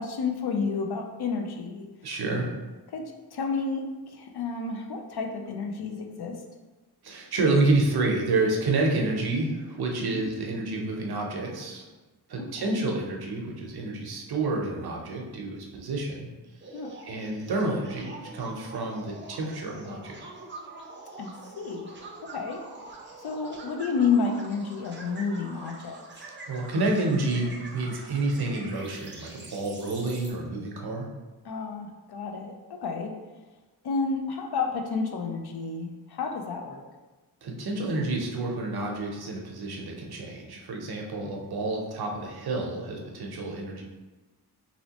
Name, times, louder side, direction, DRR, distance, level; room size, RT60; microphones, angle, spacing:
voice 1, 0.0-1.9 2.9-6.4 10.1-10.2 12.4-12.8 16.7-17.0 21.2-21.9 22.3-22.6 23.2-26.0 31.4-33.1 33.8-36.8, left 4 dB, 70° left, 3 dB, 0.5 m, -30 dB
voice 2, 2.0-2.5 7.0-11.9 12.3-16.3 17.0-20.2 26.5-31.1 37.4-43.8, right 2 dB, 70° right, 0 dB, 0.7 m, -29 dB
sound 1, 16.6-30.3, right 3 dB, 30° right, 0.5 m, -45 dB
3.0 x 2.8 x 2.8 m, 1.2 s
wide cardioid pair, 130°, 40 cm